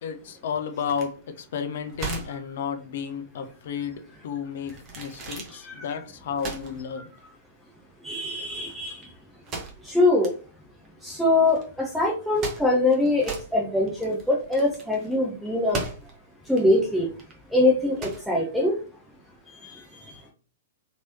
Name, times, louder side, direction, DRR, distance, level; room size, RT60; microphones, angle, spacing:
voice 1, 0.0-7.1, left 7 dB, 50° left, 0.5 m, -32 dB
sound 1, 0.9-19.4, right 3 dB, 25° right, 0.9 m, -39 dB
voice 2, 5.5-5.9 8.0-9.1 9.8-10.3 11.0-15.8 16.5-17.1 17.5-18.8 19.6-20.2, left 2 dB, ahead, 0.6 m, -23 dB
3.0 x 3.0 x 2.7 m
figure-of-eight pair, 110°, 0 cm